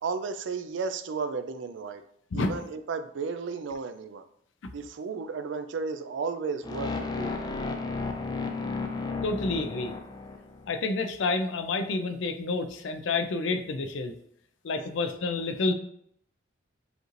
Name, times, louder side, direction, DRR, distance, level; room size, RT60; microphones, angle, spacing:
voice 1, 0.0-2.0 2.3-4.2 4.7-7.6, right 5 dB, 75° right, 0.4 m, -34 dB
sound 1, 6.6-10.7, left 3 dB, 20° left, 0.4 m, -33 dB
voice 2, 9.2-9.9 10.7-14.1 14.6-15.7, left 3 dB, 80° left, 0.5 m, -29 dB
5.1 x 3.1 x 2.5 m
head